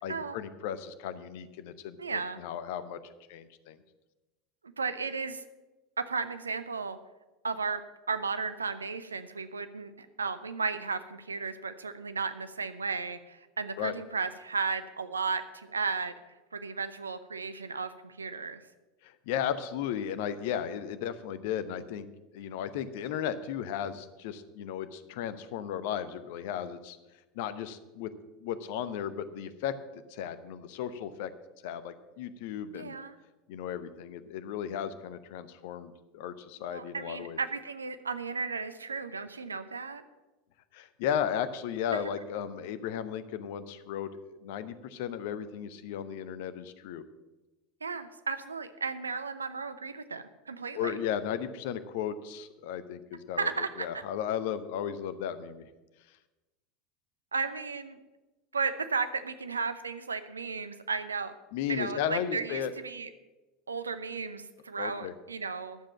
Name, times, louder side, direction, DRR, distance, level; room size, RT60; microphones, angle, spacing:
voice 1, 0.0-3.0 3.3-3.8 13.8-13.9 19.0-22.1 22.3-27.0 27.3-28.1 28.4-29.7 30.1-31.3 31.6-33.0 33.5-37.4 40.7-47.0 50.7-55.7 61.5-62.7 64.8-65.1, left 9 dB, 55° left, 12 dB, 0.8 m, -35 dB
voice 2, 2.0-2.4 4.8-5.4 6.0-7.0 7.4-16.1 16.5-18.6 32.7-33.1 36.7-40.0 41.9-42.0 47.8-50.9 53.4-53.9 57.3-58.0 58.5-61.3 61.7-63.1 63.7-65.8, right 4 dB, 80° right, 11 dB, 0.7 m, -34 dB
11.5 x 7.5 x 7.3 m, 1.1 s
figure-of-eight pair, 80°, 0 cm